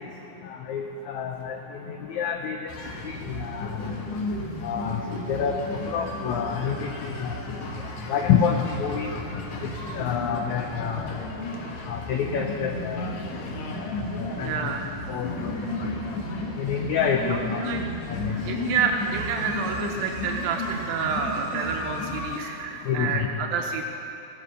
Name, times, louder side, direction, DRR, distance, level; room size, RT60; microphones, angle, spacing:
voice 1, 0.5-1.6 1.9-2.6 3.1-3.8 4.6-5.0 5.3-7.4 8.1-9.1 9.9-11.1 11.9-13.2 14.4-14.7 15.1-15.9 16.6-17.6 18.1-18.4 22.9-23.2, left 7 dB, 85° left, 3 dB, 1.6 m, -27 dB
sound 1, 2.7-22.4, left 1 dB, 65° left, 2.1 m, -33 dB
voice 2, 14.4-15.0 17.3-17.8 18.4-23.8, right 6 dB, 80° right, 2 dB, 2.5 m, -29 dB
15.5 x 9.0 x 6.4 m, 2.9 s
omnidirectional pair, 4.2 m